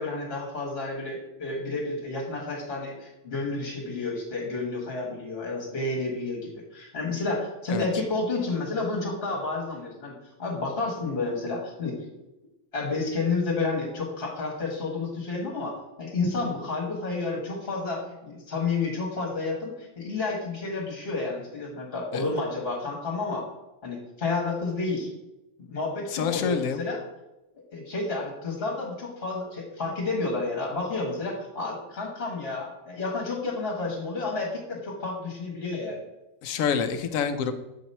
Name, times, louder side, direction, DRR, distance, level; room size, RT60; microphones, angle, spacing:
voice 1, 0.0-10.1 10.4-12.0 12.7-23.5 23.8-25.1 25.6-27.0 27.7-36.0, left 3 dB, 50° left, -1 dB, 1.7 m, -30 dB
voice 2, 26.1-26.8 36.4-37.5, left 6 dB, 85° left, 9 dB, 1.0 m, -27 dB
7.1 x 3.0 x 5.4 m, 0.95 s
omnidirectional pair, 1.4 m